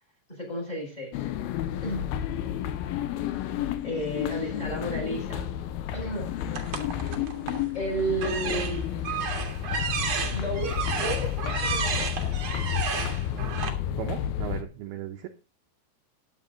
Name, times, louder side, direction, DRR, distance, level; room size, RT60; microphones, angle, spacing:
voice 1, 0.3-1.1 1.8-2.1 3.8-5.5 5.9-6.3 7.7-9.2 10.3-11.3 11.6-12.1, right 1 dB, 10° left, 2 dB, 5.7 m, -32 dB
sound 1, 1.1-14.6, left 10 dB, 75° left, 2.3 m, -31 dB
sound 2, 6.5-7.7 8.1-13.7, right 6 dB, 50° right, 2.3 m, -32 dB
voice 2, 8.2-8.7 14.0-15.3, right 10 dB, 75° right, 4 dB, 2.6 m, -37 dB
13.0 x 9.7 x 3.9 m, 0.30 s
omnidirectional pair, 5.1 m